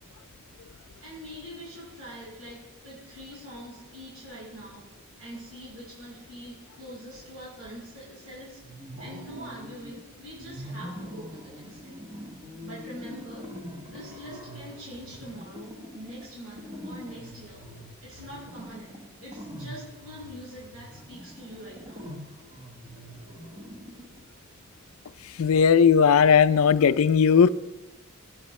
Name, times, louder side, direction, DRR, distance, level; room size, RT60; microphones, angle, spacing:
voice 1, 1.0-8.6 9.0-12.0 12.6-13.5 13.9-17.7 18.0-22.0, equal, 85° right, 5.1 m, -44 dB
sound 1, 8.6-10.0 10.4-24.3, equal, 30° right, 1.4 m, -43 dB
voice 2, 25.2-27.5, left 6 dB, 75° left, 0.4 m, -18 dB
19.5 x 10.0 x 3.2 m
head